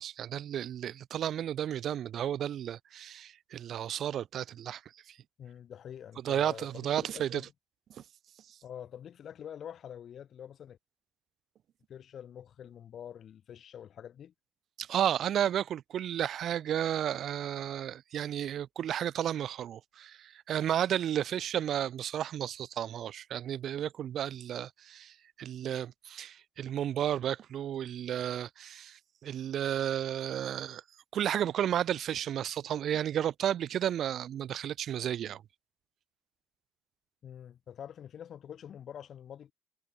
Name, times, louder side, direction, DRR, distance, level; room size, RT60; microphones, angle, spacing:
voice 1, 0.0-4.8 5.1-5.2 6.2-7.4 14.8-30.8 31.1-35.4, right 10 dB, 50° right, 0.7 m, -33 dB
voice 2, 5.4-7.5 8.6-10.8 11.9-14.3 37.2-39.5, left 9 dB, 45° left, 2.0 m, -46 dB
cardioid pair, 115°, 0 cm